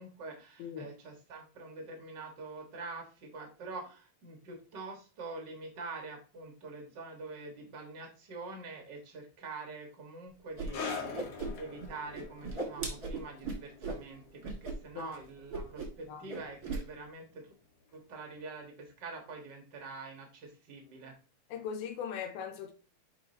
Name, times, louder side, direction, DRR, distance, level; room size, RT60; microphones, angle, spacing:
voice 1, 0.0-17.5 17.9-21.1, right 3 dB, 85° right, 0.9 m, -45 dB
Whoosh swoosh swish, 10.6-10.7 10.9-11.9 12.1-14.0 14.4-14.7 15.0-15.2 15.5-16.0 16.3-16.8, right 3 dB, 45° right, 1.3 m, -37 dB
sound 1, 10.7-17.7 17.9-18.2 18.9-19.0, left 5 dB, 65° left, 1.6 m, -45 dB
voice 2, 21.5-22.7, left 7 dB, 85° left, 2.8 m, -39 dB
8.2 x 5.0 x 2.7 m
omnidirectional pair, 4.4 m